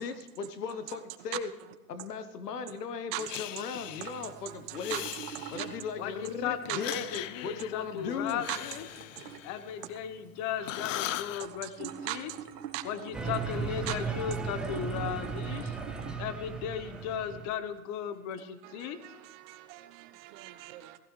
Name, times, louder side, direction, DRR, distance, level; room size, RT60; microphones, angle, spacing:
voice 1, 0.0-1.5 1.9-5.0 5.5-6.9 7.4-8.4 9.2-9.3, left 5 dB, 85° left, 1.2 m, -37 dB
voice 2, 3.1-5.7 6.7-7.1 8.1-8.8 9.2-9.4 11.4-12.8 13.9-14.4 15.1-15.7 18.6-21.0, right 16 dB, 50° right, 1.1 m, -41 dB
Breathing, 3.3-4.3 4.7-6.0 6.6-10.2 10.6-11.5, left 14 dB, 55° left, 0.7 m, -40 dB
sound 1, 3.8-16.2, right 8 dB, 80° right, 1.5 m, -47 dB
voice 3, 6.0-8.9 9.4-12.3 12.8-15.8 16.2-19.0, left 8 dB, 35° left, 1.2 m, -36 dB
sound 2, 13.1-17.5, right 5 dB, ahead, 0.4 m, -36 dB
15.5 x 15.5 x 3.3 m
hypercardioid pair, 120°, 46 cm